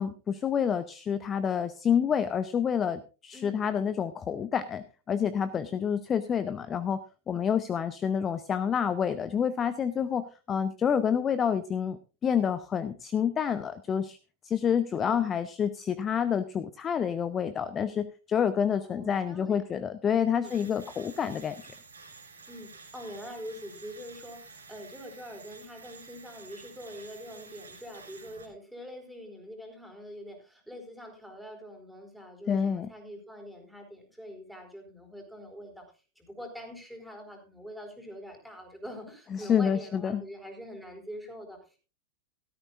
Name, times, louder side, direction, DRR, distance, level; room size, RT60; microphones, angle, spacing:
voice 1, 0.0-7.0 7.3-14.2 14.4-21.6 32.5-32.9 39.3-40.2, left 7 dB, 25° left, 14 dB, 0.7 m, -28 dB
voice 2, 3.3-3.7 14.9-15.3 18.8-19.7 20.3-20.6 22.5-41.8, equal, ahead, 2 dB, 4.4 m, -44 dB
sound 1, 20.4-28.5, right 4 dB, 75° right, 3.1 m, -50 dB
16.5 x 13.5 x 2.5 m, 0.33 s
figure-of-eight pair, 90°, 0 cm